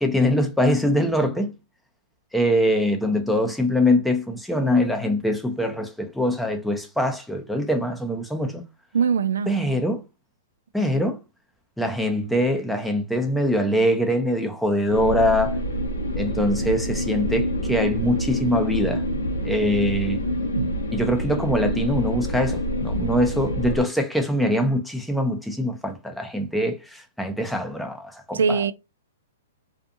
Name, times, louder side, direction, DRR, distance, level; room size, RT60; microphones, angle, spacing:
voice 1, 0.0-1.5 2.3-8.7 9.5-10.0 10.7-11.2 11.8-15.6 16.2-19.0 19.4-20.2 20.9-28.7, left 1 dB, ahead, 0.5 m, -23 dB
voice 2, 8.9-9.5 20.5-20.8 28.3-28.7, right 6 dB, 80° right, 0.3 m, -22 dB
sound 1, 14.9-23.8, equal, 85° left, 0.9 m, -26 dB
2.5 x 2.4 x 2.5 m
hypercardioid pair, 125°, 0 cm